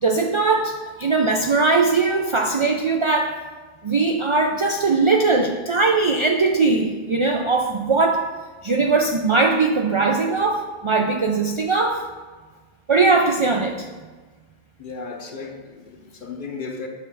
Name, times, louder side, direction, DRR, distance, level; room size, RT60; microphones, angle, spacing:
voice 1, 0.0-3.4 3.8-8.3 8.6-12.1 12.9-13.9, right 3 dB, 55° right, 0.3 m, -20 dB
voice 2, 14.8-16.9, left 4 dB, 55° left, 0.9 m, -35 dB
7.5 x 3.2 x 6.1 m
omnidirectional pair, 1.0 m